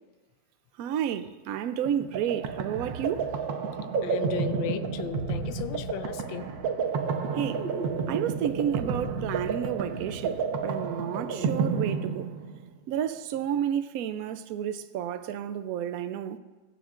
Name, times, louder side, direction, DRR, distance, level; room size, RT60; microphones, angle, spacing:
voice 1, 0.8-3.3 7.3-7.6 8.1-12.3 12.9-16.4, right 9 dB, 90° right, 0.7 m, -31 dB
sound 1, 1.9-12.7, right 5 dB, 75° right, 1.6 m, -30 dB
voice 2, 4.0-6.5, left 10 dB, 80° left, 1.4 m, -36 dB
21.5 x 9.3 x 2.5 m
omnidirectional pair, 2.1 m